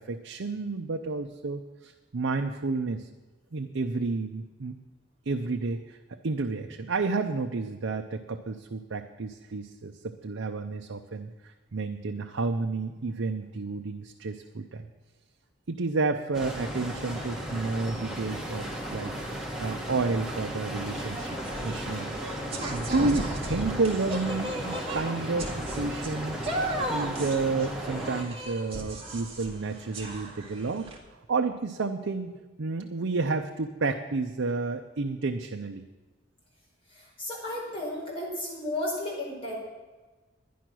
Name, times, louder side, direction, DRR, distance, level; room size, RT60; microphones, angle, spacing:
voice 1, 0.0-3.1 3.5-4.8 5.3-14.9 15.7-22.1 22.7-26.5 26.9-30.9 31.3-35.8, right 3 dB, 85° right, 4 dB, 0.6 m, -31 dB
sound 1, 16.3-28.2, equal, ahead, 1.8 m, -35 dB
sound 2, 20.8-31.0, right 1 dB, 30° right, 1.9 m, -36 dB
voice 2, 36.9-39.6, left 1 dB, 30° left, -5 dB, 4.8 m, -33 dB
12.0 x 10.0 x 6.1 m, 1.2 s
head